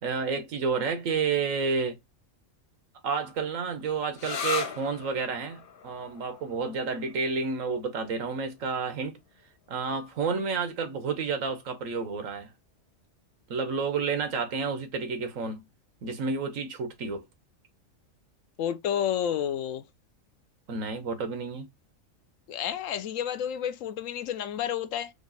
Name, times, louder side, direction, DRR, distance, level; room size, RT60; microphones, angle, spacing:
voice 1, 0.0-2.0 3.0-9.2 9.7-12.5 13.5-15.7 16.0-17.2 20.7-21.7, right 5 dB, 75° right, 1.3 m, -30 dB
sound 1, 4.2-11.6, left 6 dB, 50° left, 0.7 m, -40 dB
voice 2, 18.6-19.9 22.5-25.1, left 9 dB, 75° left, 1.0 m, -30 dB
5.1 x 2.4 x 3.9 m
omnidirectional pair, 1.4 m